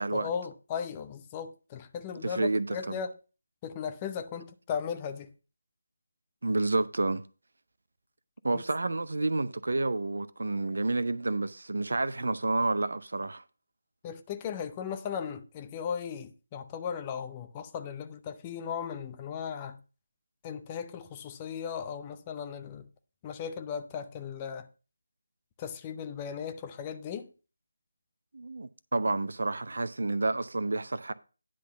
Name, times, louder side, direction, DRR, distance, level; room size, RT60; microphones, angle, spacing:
voice 1, 0.0-3.1 3.6-5.3 8.5-8.6 14.0-19.8 20.4-22.9 23.2-24.7 25.6-27.3, left 7 dB, 20° left, 0.6 m, -37 dB
voice 2, 2.2-3.0 6.4-7.2 8.4-13.4 28.3-31.1, right 2 dB, 60° right, 0.6 m, -29 dB
10.0 x 3.8 x 6.7 m
figure-of-eight pair, 155°, 0 cm